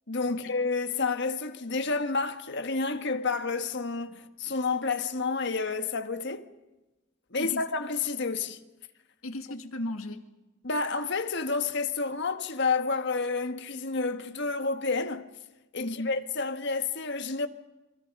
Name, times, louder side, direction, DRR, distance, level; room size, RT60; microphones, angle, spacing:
voice 1, 0.1-6.5 7.3-8.6 10.6-15.3 15.7-17.5, left 4 dB, 55° left, 1.6 m, -30 dB
voice 2, 9.2-10.3 15.8-16.1, left 1 dB, 75° left, 2.1 m, -36 dB
27.0 x 24.5 x 5.4 m
head